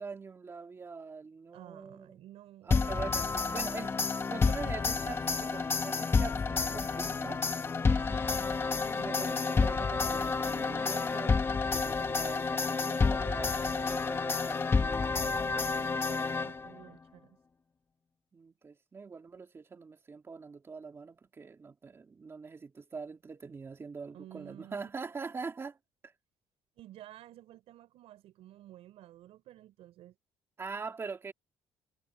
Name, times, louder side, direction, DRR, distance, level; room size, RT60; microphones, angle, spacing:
voice 1, 0.0-2.2 2.6-7.4 9.0-11.4 11.7-15.4 18.3-25.8 26.0-26.1 30.6-31.3, right 4 dB, 25° right, 2.3 m, -43 dB
voice 2, 1.5-2.8 7.8-8.5 8.9-9.3 15.2-17.4 24.1-24.9 26.8-30.2, right 13 dB, 70° right, 6.0 m, -53 dB
sound 1, 2.7-16.8, left 4 dB, 20° left, 1.3 m, -30 dB
cardioid pair, 140°, 11 cm